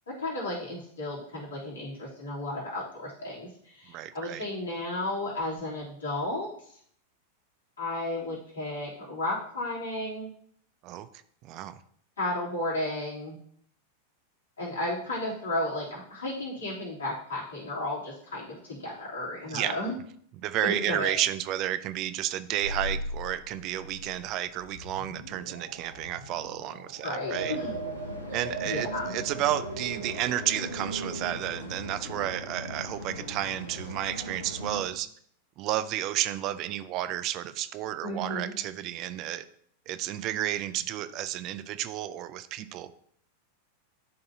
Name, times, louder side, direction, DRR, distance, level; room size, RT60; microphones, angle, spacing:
voice 1, 0.1-6.8 7.8-10.3 12.2-13.4 14.6-19.9 20.6-21.1 27.0-27.7 28.3-29.1 38.0-38.5, left 1 dB, 70° left, -5 dB, 3.0 m, -33 dB
voice 2, 3.9-4.4 10.8-11.1 11.4-11.7 19.5-19.8 20.4-27.6 28.3-35.1 35.6-39.4 39.9-42.9, right 13 dB, 40° right, 12 dB, 0.4 m, -32 dB
sound 1, 22.6-31.3, right 2 dB, 90° right, 1.0 m, -39 dB
sound 2, 27.3-34.8, equal, 85° left, 1.1 m, -39 dB
11.0 x 3.9 x 2.8 m, 0.62 s
figure-of-eight pair, 90°, 0 cm